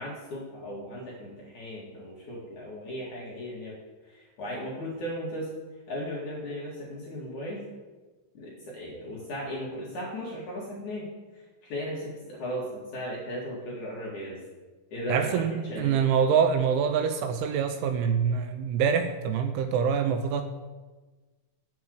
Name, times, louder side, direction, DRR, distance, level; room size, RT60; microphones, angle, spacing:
voice 1, 0.0-3.8 4.1-5.5 5.9-7.6 8.3-11.1 11.3-14.4 14.9-16.1, equal, 55° left, -4 dB, 2.3 m, -36 dB
voice 2, 15.1-20.4, right 7 dB, 85° right, 7 dB, 2.9 m, -25 dB
9.3 x 7.6 x 7.7 m, 1.3 s
omnidirectional pair, 5.8 m